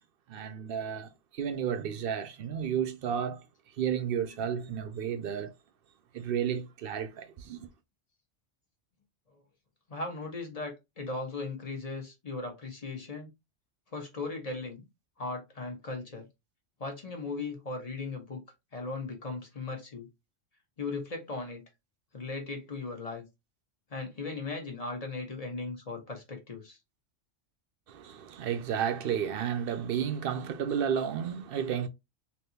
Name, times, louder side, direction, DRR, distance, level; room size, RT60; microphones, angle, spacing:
voice 1, 0.3-3.5 3.8-5.5 6.1-7.7 27.9-31.9, right 8 dB, 60° right, 0.6 m, -32 dB
voice 2, 9.9-13.3 13.9-14.8 15.2-16.3 16.8-18.4 18.7-20.1 20.8-21.6 22.1-23.2 23.9-26.8, left 3 dB, 35° left, 1.1 m, -37 dB
3.4 x 2.9 x 2.8 m
omnidirectional pair, 1.3 m